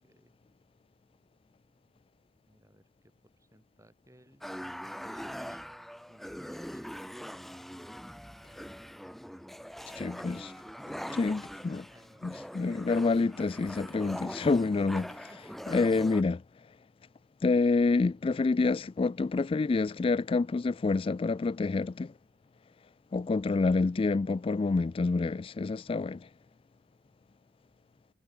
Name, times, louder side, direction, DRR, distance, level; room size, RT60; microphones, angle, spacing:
voice 1, 0.0-0.3 2.5-5.6 6.1-7.0 7.3-8.0 11.9-12.9 15.2-15.7, right 1 dB, 15° right, 7.1 m, -62 dB
sound 1, 4.4-16.2, equal, ahead, 1.1 m, -42 dB
voice 2, 9.9-10.5 11.1-11.9 12.2-15.3 15.7-16.4 17.4-22.1 23.1-26.3, left 3 dB, 30° left, 0.3 m, -28 dB
head